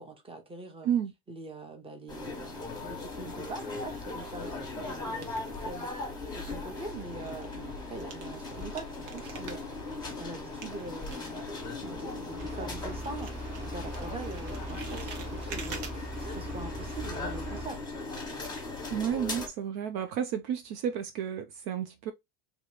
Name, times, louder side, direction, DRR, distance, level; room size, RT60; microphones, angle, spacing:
voice 1, 0.0-0.9 1.3-5.4 5.6-11.4 11.8-17.8, right 2 dB, 10° right, 0.9 m, -43 dB
sound 1, 2.1-19.5, left 3 dB, 10° left, 1.2 m, -38 dB
sound 2, 4.2-6.1 6.4-12.8 13.0-15.9, right 6 dB, 75° right, 1.3 m, -48 dB
sound 3, 12.4-17.7, right 1 dB, 35° right, 1.3 m, -40 dB
voice 2, 18.9-22.1, right 9 dB, 55° right, 0.5 m, -31 dB
3.0 x 3.0 x 3.1 m
cardioid pair, 135°, 46 cm